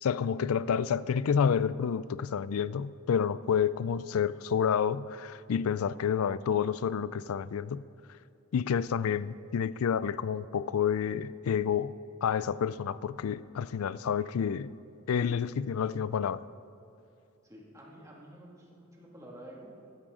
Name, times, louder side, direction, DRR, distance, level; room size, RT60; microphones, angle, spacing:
voice 1, 0.0-7.8 8.5-12.0 12.2-14.7 15.1-16.4, left 7 dB, 85° left, 17 dB, 0.4 m, -29 dB
voice 2, 17.4-20.0, right 1 dB, 15° right, -3 dB, 2.2 m, -50 dB
15.5 x 12.5 x 3.8 m, 2.7 s
head